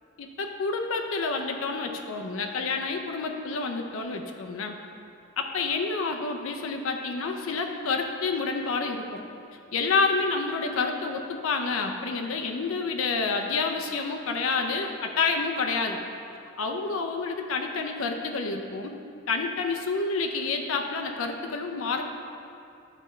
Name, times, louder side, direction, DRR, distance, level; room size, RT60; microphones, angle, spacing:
voice 1, 0.2-4.7 5.4-9.2 9.7-16.0 16.6-19.0 19.3-22.0, left 4 dB, 90° left, 3 dB, 0.5 m, -28 dB
9.8 x 5.3 x 3.2 m, 2.6 s
head